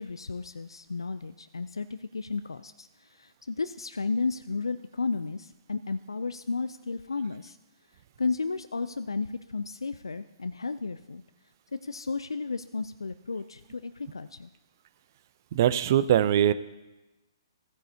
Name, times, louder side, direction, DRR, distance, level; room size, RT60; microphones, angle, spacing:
voice 1, 0.0-7.6 8.2-11.2 11.7-14.5, left 4 dB, 85° left, 11 dB, 0.4 m, -33 dB
voice 2, 15.5-16.5, right 10 dB, 45° right, 15 dB, 0.5 m, -22 dB
15.5 x 9.3 x 2.7 m, 1.1 s
figure-of-eight pair, 130°, 2 cm